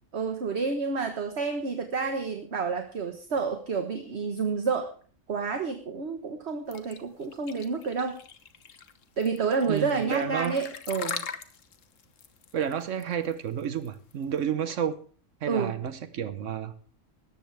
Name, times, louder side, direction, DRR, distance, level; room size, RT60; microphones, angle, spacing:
voice 1, 0.1-4.9 5.3-8.2 9.2-11.3 15.5-15.7, right 5 dB, 60° right, 6 dB, 1.6 m, -29 dB
sound 1, 6.7-14.4, left 7 dB, 85° left, 1.5 m, -40 dB
voice 2, 9.6-10.6 12.5-15.0 15.4-16.7, right 8 dB, 75° right, 12 dB, 1.2 m, -30 dB
18.0 x 14.0 x 3.4 m, 0.42 s
omnidirectional pair, 1.3 m